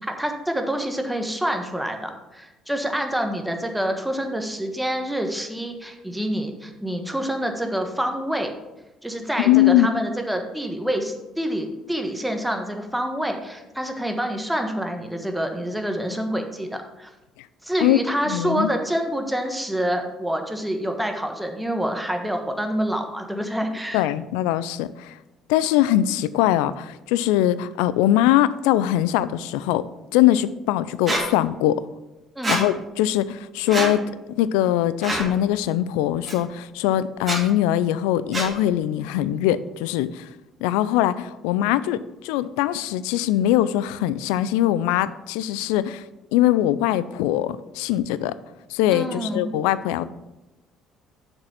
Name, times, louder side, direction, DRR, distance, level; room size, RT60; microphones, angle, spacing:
voice 1, 0.0-8.5 9.0-17.1 17.6-24.0 32.3-32.5 48.9-49.5, equal, 5° right, 4 dB, 1.3 m, -27 dB
voice 2, 9.4-9.9 17.8-18.0 18.3-18.7 23.9-25.1 25.5-29.9 30.1-31.8 32.5-34.1 34.3-40.3 40.6-46.0 46.3-48.3 48.7-50.0, left 13 dB, 75° left, 16 dB, 0.3 m, -21 dB
Squeak, 31.1-31.2 32.4-32.6 33.7-33.9 35.0-35.3 36.3-36.4 37.2-37.4 38.3-38.5, right 2 dB, 25° right, 3.2 m, -24 dB
7.0 x 5.3 x 5.7 m, 1.0 s
hypercardioid pair, 55°, 0 cm